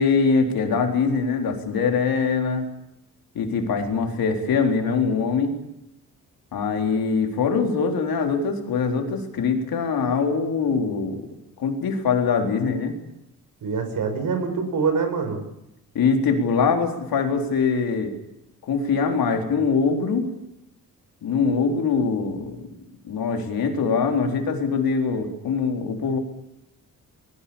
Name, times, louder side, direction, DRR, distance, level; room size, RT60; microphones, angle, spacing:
voice 1, 0.0-2.7 3.4-5.6 6.5-11.2 11.6-12.9 15.9-18.1 18.6-20.3 21.2-22.6 23.0-26.2, left 5 dB, 85° left, 3 dB, 4.0 m, -23 dB
voice 2, 13.6-15.4, right 5 dB, 65° right, 6 dB, 6.6 m, -25 dB
26.0 x 20.5 x 7.1 m, 0.85 s
cardioid pair, 125°, 35 cm